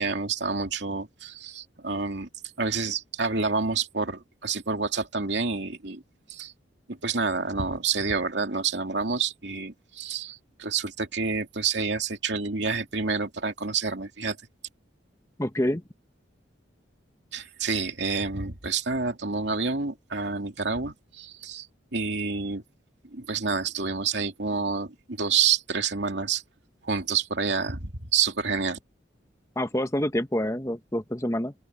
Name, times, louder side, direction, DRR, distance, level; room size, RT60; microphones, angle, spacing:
voice 1, 0.0-2.3 2.6-6.0 6.3-6.5 6.9-14.4 17.3-21.7 21.9-22.6 23.1-26.4 26.8-28.8, right 5 dB, 65° right, 2.6 m, -28 dB
voice 2, 15.4-15.8 29.6-31.5, left 1 dB, 15° left, 1.2 m, -27 dB
open air
head